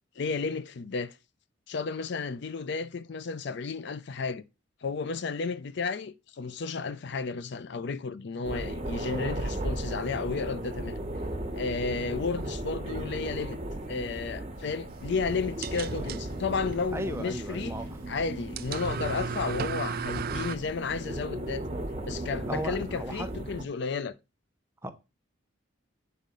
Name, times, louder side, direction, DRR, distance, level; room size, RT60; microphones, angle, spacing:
voice 1, 0.2-1.2 1.7-4.4 4.8-11.0 11.5-13.6 13.9-17.8 18.1-21.6 22.1-24.1, left 4 dB, 60° left, 0.5 m, -33 dB
sound 1, 8.4-23.6, right 1 dB, 30° right, 1.3 m, -36 dB
sound 2, 14.9-20.6, right 6 dB, 50° right, 0.4 m, -37 dB
voice 2, 16.9-17.9 22.4-23.3 24.8-24.9, right 1 dB, 15° right, 0.8 m, -36 dB
9.1 x 4.2 x 5.2 m
head